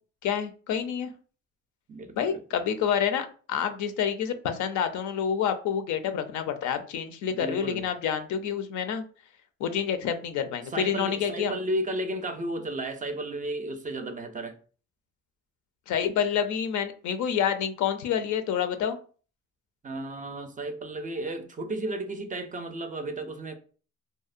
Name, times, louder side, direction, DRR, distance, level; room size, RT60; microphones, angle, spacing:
voice 1, 0.2-1.1 2.2-9.0 9.6-11.5 15.9-19.0, left 8 dB, 75° left, 0.5 m, -28 dB
voice 2, 1.9-2.4 7.3-7.9 10.7-14.6 19.8-23.5, right 1 dB, 25° right, 0.4 m, -33 dB
2.7 x 2.0 x 2.4 m
cardioid pair, 90°, 30 cm